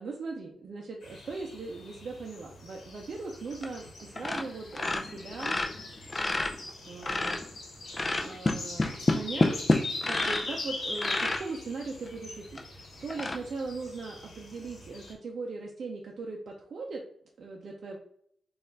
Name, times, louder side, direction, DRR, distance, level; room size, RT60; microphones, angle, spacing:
voice 1, 0.0-5.6 6.9-7.4 7.8-9.5 10.0-12.6 13.0-17.0 17.4-18.0, right 3 dB, 55° right, -1 dB, 0.5 m, -39 dB
sound 1, 1.0-15.1, left 2 dB, 60° left, 1.1 m, -42 dB
sound 2, 3.5-3.9 4.2-4.5 4.7-7.5 7.9-10.6 10.9-11.4 12.1-12.2 12.6-12.7 13.1-13.3, left 2 dB, 30° left, 0.4 m, -28 dB
4.2 x 2.4 x 3.8 m, 0.66 s
wide cardioid pair, 155°, 0 cm